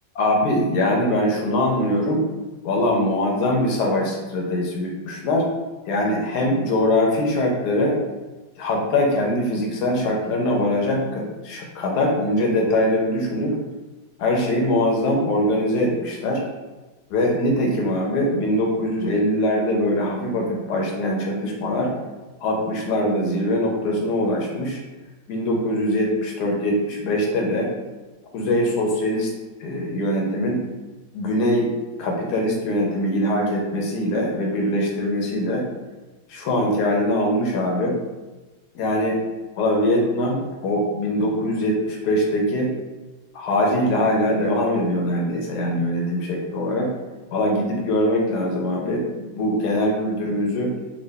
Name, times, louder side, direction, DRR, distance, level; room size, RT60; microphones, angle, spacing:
voice 1, 0.1-2.2 2.6-5.5 5.9-8.0 8.6-13.6 14.2-16.4 17.1-21.9 22.4-24.8 25.3-27.7 28.3-29.3 29.6-30.6 31.1-31.7 32.0-35.7 36.3-38.0 38.7-39.2 39.6-42.7 43.3-46.9 47.3-49.0 49.3-50.7, left 1 dB, 70° left, 0 dB, 1.0 m, -22 dB
3.7 x 2.2 x 3.3 m, 1.2 s
omnidirectional pair, 2.1 m